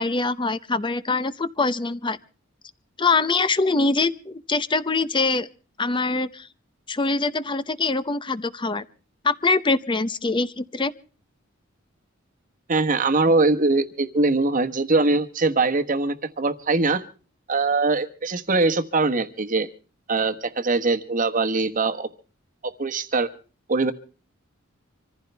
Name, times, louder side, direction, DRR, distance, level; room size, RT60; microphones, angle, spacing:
voice 1, 0.0-2.2 3.0-5.5 5.8-6.5 6.9-8.8 9.2-10.9, left 3 dB, 25° left, 14 dB, 0.7 m, -23 dB
voice 2, 12.7-17.0 17.5-19.7 20.1-22.1 22.8-23.3 23.7-23.9, right 3 dB, 40° right, 8 dB, 1.2 m, -22 dB
25.5 x 15.0 x 3.4 m, 0.38 s
head